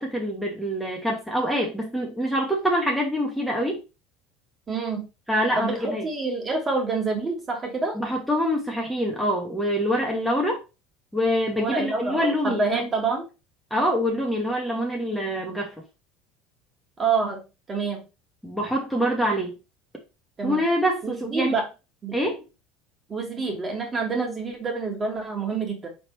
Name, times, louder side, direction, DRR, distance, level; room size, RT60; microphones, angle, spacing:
voice 1, 0.0-3.8 5.3-6.1 7.9-10.6 11.1-12.8 13.7-15.7 18.4-19.5 20.4-21.5 22.1-22.4, equal, 5° left, -1 dB, 1.2 m, -25 dB
voice 2, 4.7-5.1 5.5-8.0 11.6-13.3 17.0-17.4 17.7-18.0 20.4-20.6 21.0-21.6 22.0-22.2 23.1-25.9, right 4 dB, 30° right, 1 dB, 1.7 m, -27 dB
4.0 x 3.5 x 3.0 m, 0.29 s
supercardioid pair, 90°, 0 cm